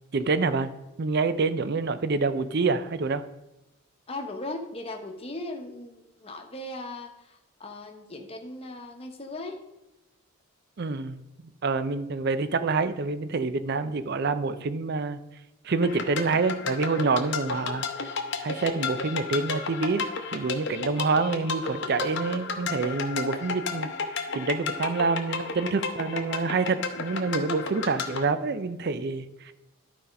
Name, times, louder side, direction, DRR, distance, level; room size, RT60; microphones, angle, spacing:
voice 1, 0.1-0.7 1.0-3.2 10.8-11.2 11.6-15.2 15.6-17.8 18.4-23.9 24.3-29.5, right 4 dB, 50° right, 12 dB, 0.5 m, -27 dB
voice 2, 4.1-9.6, left 2 dB, 30° left, 3 dB, 1.0 m, -38 dB
sound 1, 15.8-28.2, left 4 dB, 55° left, 0.8 m, -33 dB
11.5 x 4.2 x 5.2 m, 0.95 s
head